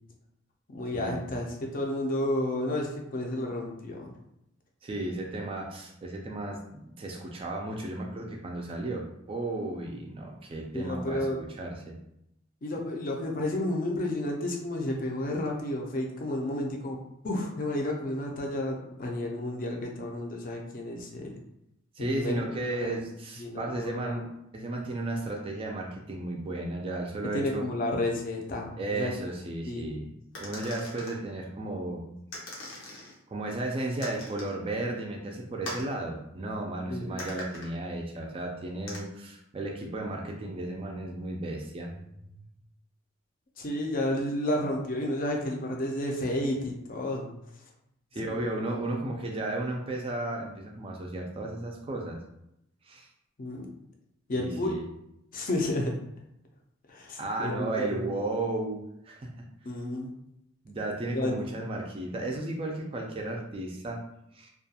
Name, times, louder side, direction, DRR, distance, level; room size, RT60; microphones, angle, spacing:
voice 1, 0.7-4.1 10.7-11.4 12.6-17.0 17.2-21.3 22.0-22.3 22.8-23.1 23.4-24.1 27.3-29.1 29.7-30.0 36.9-37.1 43.6-47.3 48.2-48.4 53.4-53.7 54.3-54.7 55.3-55.9 56.9-58.1 59.6-60.1 61.1-61.3, left 1 dB, 45° left, 1 dB, 0.5 m, -31 dB
voice 2, 4.8-12.0 21.9-27.7 28.7-30.1 30.4-32.1 33.3-41.9 42.3-42.4 48.1-52.2 52.8-53.1 54.4-54.8 57.2-59.5 60.6-64.0 64.3-64.5, right 2 dB, 30° right, 1 dB, 0.3 m, -34 dB
sound 1, 30.3-31.2 32.3-33.1 34.0-34.6 35.6-35.9 37.2-37.7 38.9-39.0, left 1 dB, 85° left, 0.8 m, -40 dB
2.3 x 2.2 x 2.7 m, 0.82 s
head